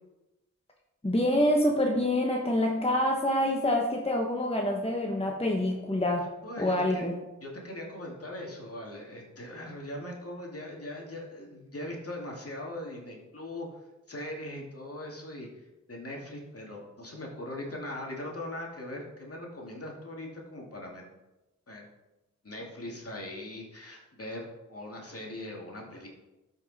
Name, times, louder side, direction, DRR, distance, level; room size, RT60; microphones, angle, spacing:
voice 1, 1.0-6.3 6.6-7.2, left 1 dB, 20° left, 0 dB, 1.2 m, -26 dB
voice 2, 6.4-7.1 7.4-13.7 14.1-21.0 21.7-21.9 22.4-26.1, left 1 dB, 50° left, -1 dB, 2.5 m, -40 dB
13.0 x 5.4 x 4.2 m, 1.0 s
cardioid pair, 50°, 30 cm